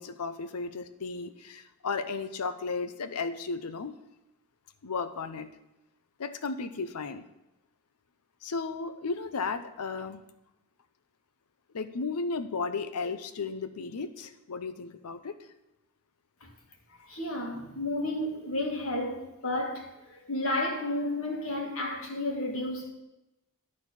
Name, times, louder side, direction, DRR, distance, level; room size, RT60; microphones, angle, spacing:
voice 1, 0.0-4.0 4.8-5.5 6.2-7.2 8.4-10.2 11.7-15.4, left 4 dB, 90° left, 0.6 m, -34 dB
voice 2, 17.1-22.9, left 1 dB, 65° left, 1.9 m, -32 dB
12.0 x 4.2 x 7.3 m
head